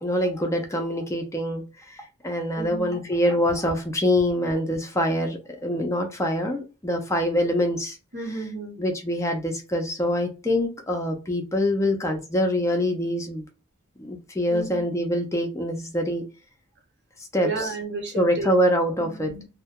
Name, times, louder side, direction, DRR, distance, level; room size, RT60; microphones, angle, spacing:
voice 1, 0.0-8.0 8.8-13.4 14.0-16.2 17.3-17.5 18.1-19.3, equal, 15° left, 0.4 m, -25 dB
voice 2, 2.5-3.0 8.1-8.8 14.5-14.8 17.4-18.5 19.0-19.5, right 3 dB, 55° right, 0.8 m, -33 dB
2.2 x 2.1 x 2.8 m
head